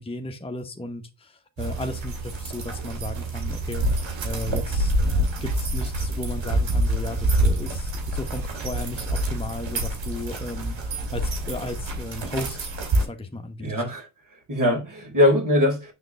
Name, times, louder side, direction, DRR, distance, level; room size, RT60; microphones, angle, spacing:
voice 1, 0.0-4.9 5.4-12.7 13.0-13.7, left 1 dB, 10° left, 1.0 m, -35 dB
sound 1, 1.6-13.0, right 1 dB, 70° right, 2.2 m, -26 dB
voice 2, 13.6-14.1 14.5-15.9, left 1 dB, 40° right, 3.8 m, -21 dB
7.9 x 3.8 x 3.3 m
cardioid pair, 55°, 47 cm